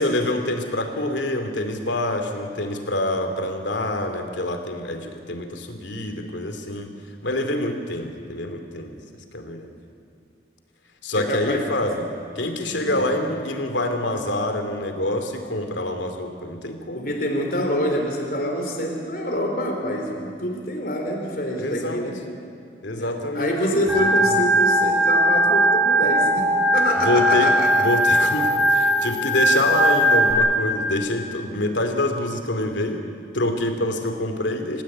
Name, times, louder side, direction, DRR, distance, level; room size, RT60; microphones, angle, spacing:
voice 1, 0.0-6.9 7.2-9.0 9.3-9.7 11.0-12.0 12.3-17.1 21.6-22.0 22.8-23.6 23.9-24.4 27.0-27.5 27.8-33.1 33.3-34.8, left 1 dB, 85° left, 6 dB, 2.8 m, -26 dB
voice 2, 11.1-11.6 12.7-13.0 16.9-22.2 23.0-27.7, left 1 dB, 50° left, 2 dB, 4.1 m, -26 dB
Organ, 23.9-30.3, right 1 dB, 5° right, 4.2 m, -19 dB
29.0 x 15.5 x 8.7 m, 2.5 s
head